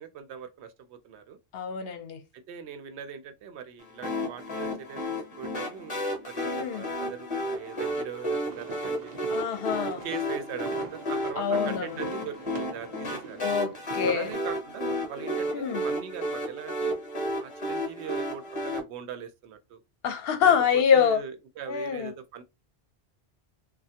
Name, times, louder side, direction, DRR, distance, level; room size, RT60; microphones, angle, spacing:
voice 1, 0.0-1.4 2.3-9.3 10.0-13.4 14.1-17.0 17.4-19.8 20.4-22.4, right 8 dB, 90° right, 0.9 m, -40 dB
voice 2, 1.5-2.2 6.4-6.8 9.3-10.0 11.4-11.9 13.4-14.3 15.5-15.8 20.0-21.2 21.7-22.1, left 7 dB, 70° left, 0.8 m, -25 dB
sound 1, 4.0-18.8, equal, 30° left, 0.8 m, -32 dB
sound 2, 8.5-14.3, right 5 dB, 50° right, 0.6 m, -44 dB
3.2 x 2.2 x 2.8 m
omnidirectional pair, 1.1 m